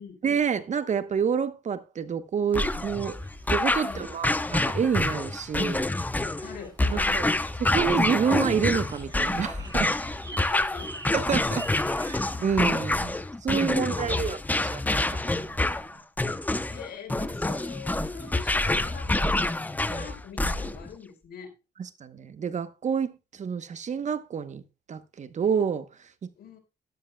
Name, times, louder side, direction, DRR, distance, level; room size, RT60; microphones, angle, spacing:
voice 1, 0.2-3.2 3.5-5.9 6.9-7.3 7.6-9.9 11.1-11.6 12.1-14.4 14.7-15.0 15.2-15.8 19.9-20.0 21.8-24.6 24.9-26.1, right 7 dB, 45° right, 1.0 m, -28 dB
sound 1, 2.5-20.9, left 2 dB, 10° left, 0.7 m, -27 dB
sound 2, 3.0-12.2, right 2 dB, 25° right, 5.4 m, -47 dB
voice 2, 6.4-7.3 10.3-11.2 11.6-11.7 13.5-14.3 16.7-21.5 26.3-26.6, left 7 dB, 65° left, 4.2 m, -43 dB
12.5 x 12.5 x 2.2 m
cardioid pair, 105°, 17 cm